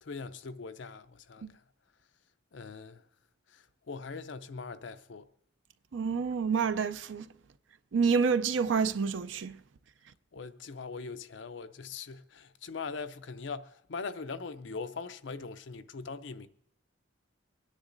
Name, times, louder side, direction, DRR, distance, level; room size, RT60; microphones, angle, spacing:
voice 1, 0.0-1.6 2.5-3.0 3.5-5.3 10.3-16.5, left 4 dB, 70° left, 0.6 m, -41 dB
voice 2, 5.9-7.3 7.9-9.5, right 5 dB, 75° right, 0.5 m, -28 dB
24.5 x 9.9 x 2.6 m
head